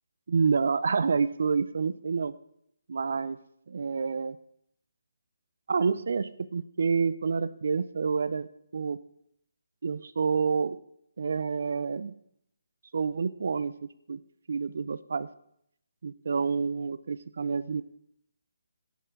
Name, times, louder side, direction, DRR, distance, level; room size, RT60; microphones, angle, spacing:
voice 1, 0.3-2.3 2.9-3.4 3.7-4.4 5.7-9.0 9.8-10.8 11.2-12.1 12.9-13.7 14.1-14.2 14.5-15.3 16.0-17.8, right 5 dB, 65° right, 15 dB, 0.6 m, -28 dB
13.0 x 10.0 x 3.8 m, 0.70 s
hypercardioid pair, 160°, 0 cm